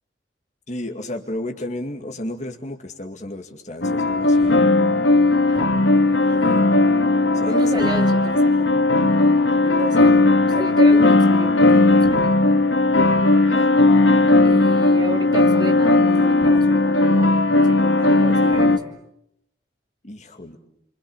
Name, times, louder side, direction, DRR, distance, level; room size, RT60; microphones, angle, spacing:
voice 1, 0.7-4.6 7.3-7.9 13.3-13.7 20.0-20.6, left 1 dB, 40° left, 4 dB, 2.3 m, -33 dB
sound 1, 3.8-18.8, left 2 dB, 80° left, 1.8 m, -16 dB
voice 2, 5.5-5.8 6.2-6.7 7.4-9.0 9.6-12.4 14.4-18.9, right 1 dB, 25° right, 4 dB, 2.8 m, -33 dB
30.0 x 25.0 x 7.3 m, 0.76 s
head